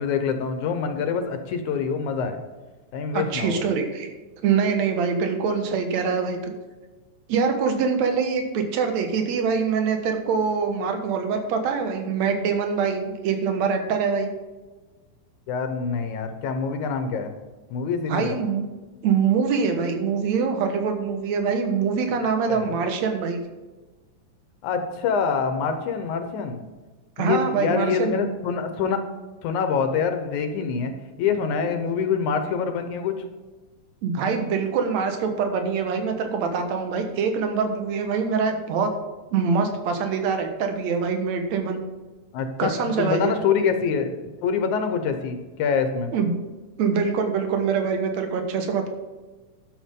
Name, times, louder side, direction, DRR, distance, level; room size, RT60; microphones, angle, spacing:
voice 1, 0.0-2.4 2.9-3.7 15.5-17.3 17.7-18.4 22.5-22.7 24.6-26.6 27.2-29.0 29.4-30.9 31.2-33.1 42.3-46.1, left 6 dB, 75° left, 7 dB, 2.3 m, -25 dB
voice 2, 3.1-4.1 4.4-6.5 7.3-14.3 18.1-18.6 19.0-23.4 27.2-28.2 34.0-38.9 39.3-41.8 42.6-43.3 46.1-46.3 46.8-48.9, right 5 dB, 65° right, 5 dB, 2.4 m, -24 dB
12.0 x 7.6 x 3.7 m, 1.3 s
omnidirectional pair, 3.5 m